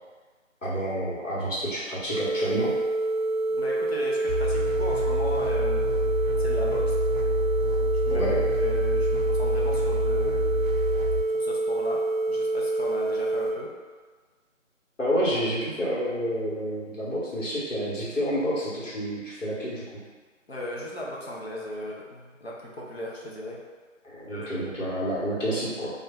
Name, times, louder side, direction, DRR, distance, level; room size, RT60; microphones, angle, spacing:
voice 1, 0.6-2.7 8.1-8.4 15.0-19.8 24.0-25.9, equal, 70° left, -7 dB, 1.3 m, -29 dB
sound 1, 2.1-13.5, right 2 dB, ahead, 0.6 m, -27 dB
voice 2, 3.5-5.9 6.4-7.0 7.9-8.3 8.6-10.6 11.3-12.0 12.3-13.7 20.5-23.6 24.3-24.8, left 1 dB, 50° left, -4 dB, 0.6 m, -36 dB
sound 2, 4.3-11.2, equal, 85° right, 0.6 m, -28 dB
2.4 x 2.2 x 3.5 m, 1.5 s
figure-of-eight pair, 165°, 39 cm